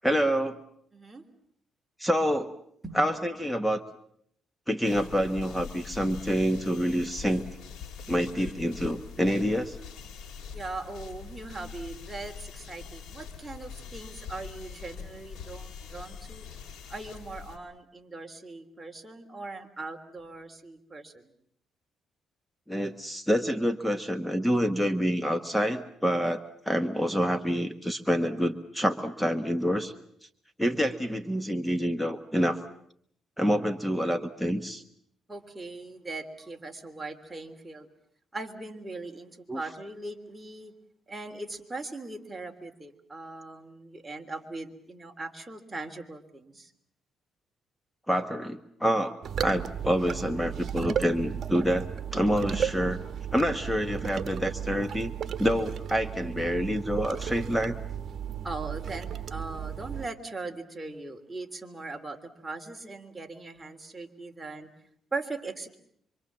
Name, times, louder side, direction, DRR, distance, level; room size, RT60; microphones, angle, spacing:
voice 1, 0.0-0.6 2.0-2.5 2.9-3.8 4.7-7.4 8.1-9.8 22.7-29.9 30.6-32.6 33.4-34.8 39.5-39.6 48.1-49.1 49.4-51.9 52.1-53.0 53.3-55.1 55.4-57.7, equal, 5° left, 10 dB, 1.4 m, -27 dB
voice 2, 0.9-1.2 2.8-3.0 10.5-16.5 16.9-21.3 35.3-37.9 38.3-40.7 41.1-46.7 58.4-64.7 65.1-65.8, right 3 dB, 15° right, 3 dB, 3.2 m, -40 dB
sound 1, 4.8-17.6, left 6 dB, 70° left, 4.3 m, -43 dB
sound 2, 49.2-60.1, right 8 dB, 55° right, 1.3 m, -34 dB
26.0 x 25.0 x 7.4 m, 0.67 s
cardioid pair, 90°, 0 cm